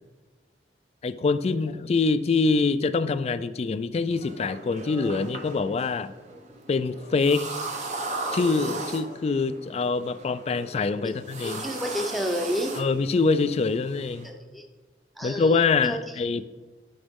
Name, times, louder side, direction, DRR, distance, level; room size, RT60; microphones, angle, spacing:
voice 1, 1.0-6.1 6.7-7.5 8.3-11.7 12.7-14.3 15.2-16.4, left 4 dB, 35° left, 14 dB, 0.3 m, -25 dB
sound 1, 4.1-14.3, right 2 dB, 40° right, 0.9 m, -37 dB
voice 2, 11.4-12.8 14.2-14.7 15.2-16.0, equal, ahead, 4 dB, 0.7 m, -30 dB
10.5 x 3.9 x 3.6 m, 1.3 s
head